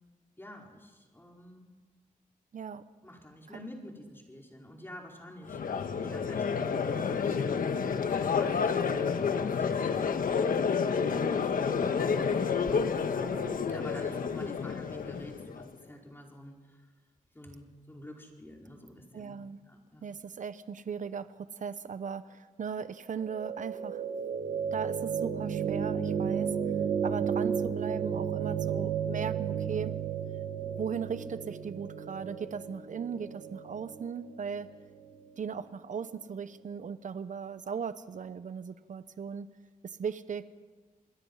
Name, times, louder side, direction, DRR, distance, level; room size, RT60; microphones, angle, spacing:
voice 1, 0.4-1.7 3.0-12.9 13.7-16.9 17.3-19.4 19.6-20.0, left 1 dB, 15° left, 0 dB, 5.0 m, -49 dB
voice 2, 2.5-2.8 3.5-3.7 13.3-13.6 19.1-19.6 20.0-24.0 24.7-26.5 27.0-30.0 30.6-34.7 35.4-39.5 39.8-40.4, right 6 dB, 65° right, 13 dB, 0.9 m, -38 dB
Crowd, 5.5-15.6, left 6 dB, 80° left, 1.4 m, -29 dB
sound 1, 23.2-35.3, right 7 dB, 80° right, 1.8 m, -33 dB
27.0 x 21.0 x 5.7 m, 1.3 s
wide cardioid pair, 90°, 14 cm